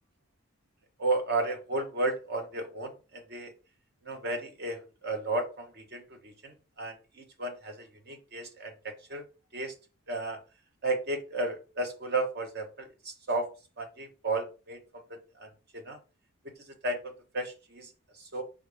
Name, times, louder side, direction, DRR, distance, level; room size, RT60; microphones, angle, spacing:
voice 1, 1.0-3.5 4.0-9.2 9.5-9.7 10.1-10.4 10.8-13.5 13.8-16.0 16.7-18.4, right 2 dB, 45° right, 5 dB, 0.9 m, -34 dB
4.9 x 3.4 x 3.2 m, 0.32 s
head